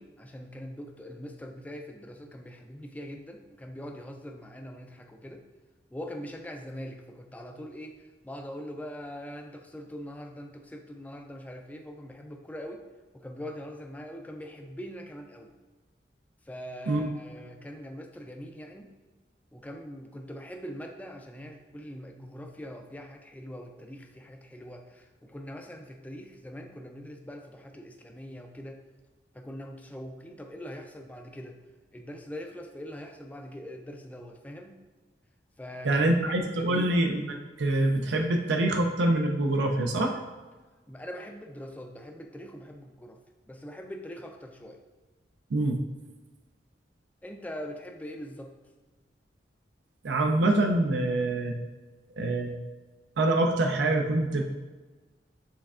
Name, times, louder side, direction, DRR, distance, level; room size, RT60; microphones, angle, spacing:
voice 1, 0.0-5.5 5.9-12.8 13.1-15.5 16.4-18.9 19.5-28.8 29.3-31.6 31.9-34.8 35.6-36.1 36.4-37.0 40.9-43.2 43.5-44.8 47.2-48.5, equal, 10° left, 3 dB, 0.3 m, -42 dB
voice 2, 35.8-40.2 45.5-45.8 50.0-51.6 52.2-52.6 53.2-54.4, right 2 dB, 75° right, 3 dB, 0.4 m, -25 dB
6.5 x 3.3 x 2.4 m, 1.3 s
head